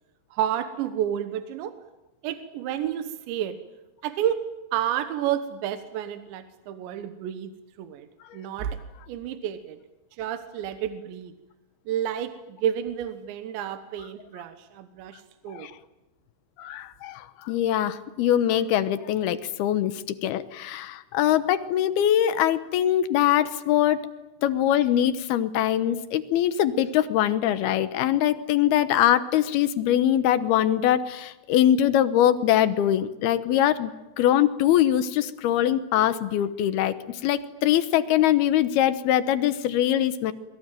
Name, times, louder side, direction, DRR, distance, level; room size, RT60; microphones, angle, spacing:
voice 1, 0.3-1.8 2.2-3.6 4.0-4.4 4.7-7.5 7.8-8.1 8.3-8.8 9.1-9.8 10.1-11.3 11.9-15.7, right 10 dB, 80° right, 9 dB, 3.5 m, -30 dB
voice 2, 16.6-24.0 24.4-33.9 34.2-40.3, left 11 dB, 70° left, 12 dB, 2.7 m, -23 dB
27.5 x 22.0 x 9.2 m, 0.96 s
omnidirectional pair, 5.2 m